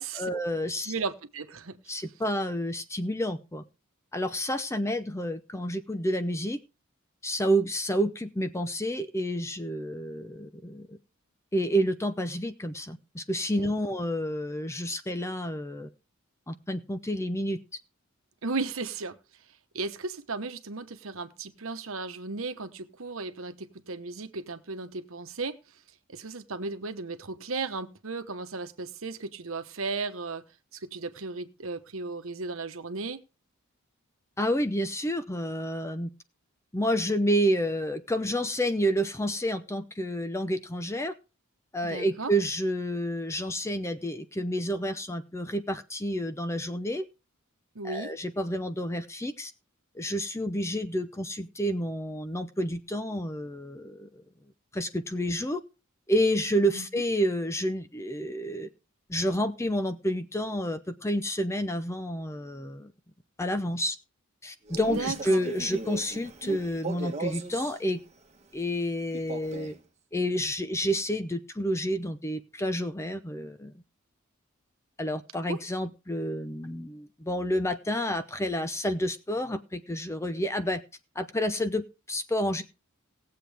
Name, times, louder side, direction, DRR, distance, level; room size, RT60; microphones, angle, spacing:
voice 1, 0.0-0.9 1.9-3.6 4.1-6.6 7.2-11.0 11.5-15.9 16.5-17.6 34.4-36.1 36.7-41.1 41.7-47.0 47.8-49.5 49.9-54.2 54.7-55.6 56.1-58.7 59.1-62.9 63.4-64.0 64.4-68.0 68.5-69.7 70.1-73.7 75.0-80.8 81.2-82.6, equal, 15° left, 0.6 m, -29 dB
voice 2, 0.9-2.0 13.6-13.7 18.4-19.2 19.7-25.6 26.1-30.4 30.7-33.2 41.8-42.3 47.7-48.1 56.7-56.9 64.9-65.4 75.5-75.6, right 4 dB, 70° right, 1.1 m, -35 dB
Male speech man speaking, 64.7-67.8 69.1-69.8, right 3 dB, 30° right, 1.3 m, -37 dB
18.5 x 7.6 x 3.4 m
head